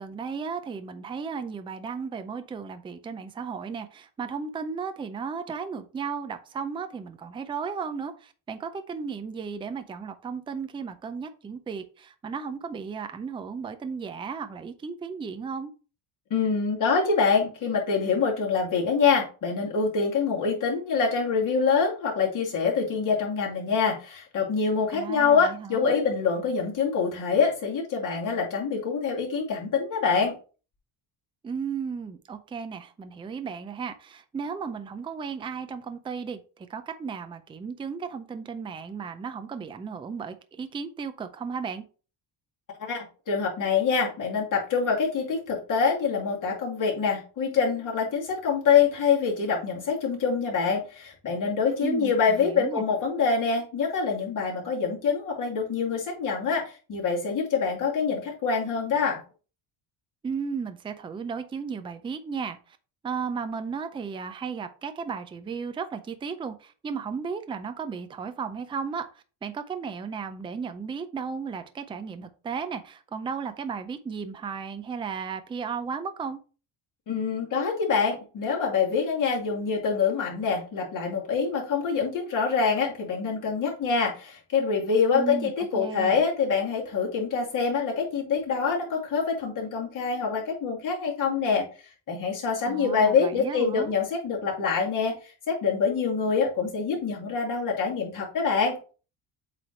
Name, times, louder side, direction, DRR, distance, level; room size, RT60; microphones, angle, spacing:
voice 1, 0.0-15.7 24.9-26.0 31.4-41.8 51.8-52.8 60.2-62.8 63.0-69.0 69.4-76.4 85.1-86.2 92.6-93.9, right 5 dB, 10° right, 9 dB, 0.4 m, -35 dB
voice 2, 16.3-30.3 42.8-59.2 77.1-91.7 92.1-95.1 95.5-98.8, left 5 dB, 45° left, -3 dB, 2.7 m, -25 dB
7.9 x 3.3 x 4.3 m, 0.36 s
cardioid pair, 165°, 44 cm